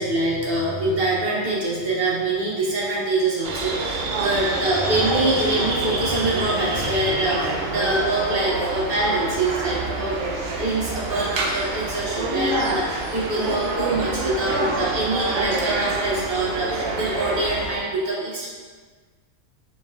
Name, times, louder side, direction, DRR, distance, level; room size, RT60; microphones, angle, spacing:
voice 1, 0.0-18.5, right 2 dB, 45° right, -6 dB, 1.0 m, -24 dB
sound 1, 3.4-17.8, right 2 dB, 65° right, 0.6 m, -27 dB
4.4 x 3.6 x 2.3 m, 1.5 s
omnidirectional pair, 1.5 m